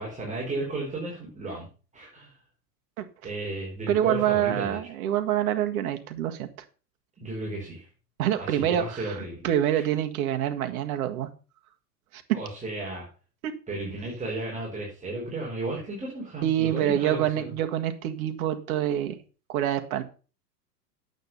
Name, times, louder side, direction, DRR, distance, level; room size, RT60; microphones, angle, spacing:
voice 1, 0.0-1.7 1.9-2.3 3.2-4.8 7.2-7.8 8.4-9.5 9.7-9.9 12.3-13.1 13.7-17.5, right 2 dB, 15° right, -4 dB, 4.8 m, -34 dB
voice 2, 3.9-6.5 8.2-11.3 12.1-12.4 13.4-13.6 16.4-19.2 19.5-20.0, right 11 dB, 55° right, 7 dB, 1.8 m, -26 dB
9.4 x 8.1 x 5.6 m, 0.35 s
hypercardioid pair, 105°, 50 cm